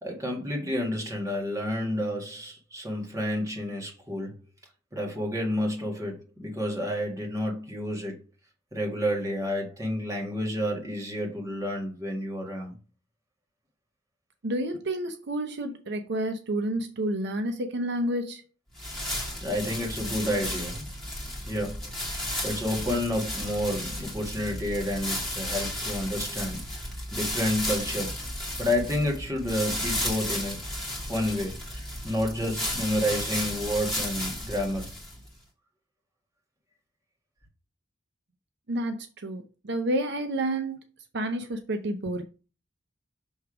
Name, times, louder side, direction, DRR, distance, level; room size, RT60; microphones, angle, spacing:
voice 1, 0.0-4.4 4.9-8.2 8.7-12.7 19.4-20.9 21.5-26.6 27.1-28.2 28.6-30.6 31.0-34.9, left 1 dB, 15° right, 1.7 m, -30 dB
voice 2, 14.4-18.4 38.7-40.8 41.1-42.2, right 1 dB, 60° right, 0.6 m, -30 dB
sound 1, 18.8-35.3, left 1 dB, ahead, 2.0 m, -33 dB
6.3 x 3.5 x 4.9 m
head